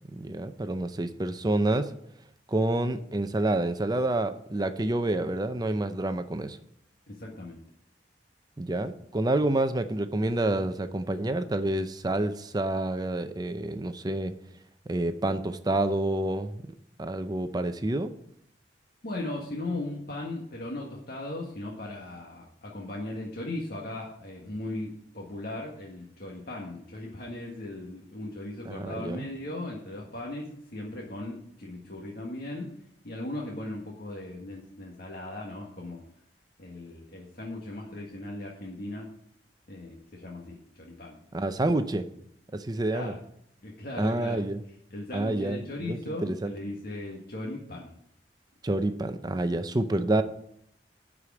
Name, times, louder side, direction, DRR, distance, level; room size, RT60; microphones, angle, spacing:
voice 1, 0.1-1.9 2.5-6.6 8.6-14.3 14.9-16.5 17.0-18.1 28.7-29.2 41.3-42.1 42.5-43.1 44.0-44.6 45.1-46.5 48.6-50.2, right 2 dB, 20° right, 10 dB, 0.6 m, -28 dB
voice 2, 7.1-7.6 19.0-32.7 33.0-36.0 36.6-39.1 39.7-41.2 42.9-43.2 43.6-44.4 44.9-48.0, left 1 dB, 60° left, -3 dB, 1.7 m, -38 dB
11.0 x 4.9 x 8.3 m, 0.71 s
head